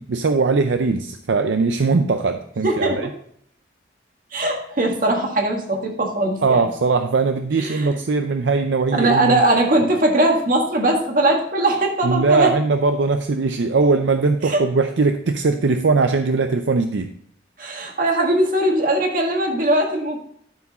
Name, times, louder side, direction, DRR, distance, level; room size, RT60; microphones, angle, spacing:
voice 1, 0.0-3.1 6.4-9.4 12.0-17.1, right 4 dB, 70° right, 7 dB, 0.5 m, -20 dB
voice 2, 2.6-3.0 4.3-6.7 7.6-8.0 9.0-12.5 14.4-14.6 17.6-20.2, right 1 dB, 45° right, 1 dB, 1.8 m, -20 dB
12.0 x 4.8 x 4.1 m, 0.68 s
head